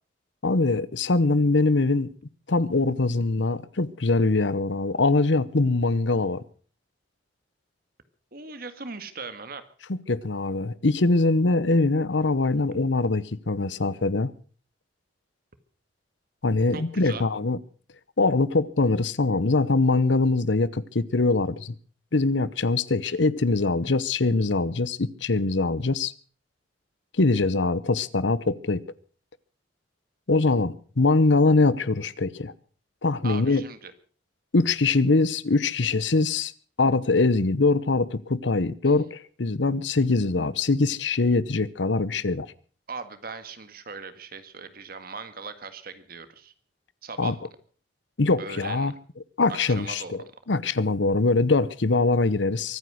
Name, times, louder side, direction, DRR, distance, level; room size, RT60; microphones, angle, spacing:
voice 1, 0.4-2.1 2.5-6.4 10.1-14.3 16.4-17.6 18.2-21.7 22.1-26.1 27.2-28.8 30.3-32.5 33.0-33.6 34.5-36.5 36.8-42.5 47.2-47.3 48.2-48.9 49.4-50.2 50.5-52.8, left 3 dB, 75° left, 0.9 m, -23 dB
voice 2, 8.3-9.7 16.7-17.2 33.2-33.9 42.9-46.5 47.0-47.4 48.4-48.9 49.5-50.3, right 4 dB, 50° right, 1.9 m, -39 dB
23.5 x 9.5 x 6.3 m
head